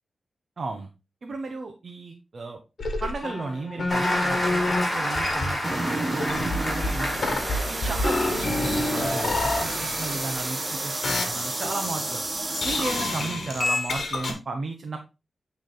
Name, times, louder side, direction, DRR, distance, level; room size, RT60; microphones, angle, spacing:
voice 1, 0.6-0.9 1.2-2.6 3.0-4.6 4.9-7.4 7.7-12.2 12.6-15.0, right 3 dB, 50° right, 4 dB, 0.8 m, -34 dB
sound 1, 2.8-4.8 5.1-5.8 6.2-10.7 11.0-12.2 12.5-14.3, left 2 dB, 55° left, 1.5 m, -28 dB
Applause, 3.9-8.4 8.8-9.1, equal, 20° left, 4.0 m, -29 dB
sound 2, 5.6-13.3, right 2 dB, 25° right, 1.1 m, -31 dB
9.1 x 3.5 x 3.8 m, 0.28 s
wide cardioid pair, 120°, 0 cm